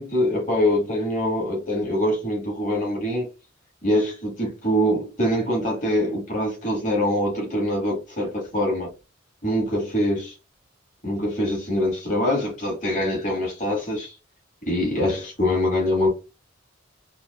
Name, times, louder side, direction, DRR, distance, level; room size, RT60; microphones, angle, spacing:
voice 1, 0.0-3.3 3.8-8.9 9.4-10.4 11.0-14.1 14.6-16.1, left 1 dB, 40° left, 2.0 m, -24 dB
4.1 x 2.7 x 2.3 m
head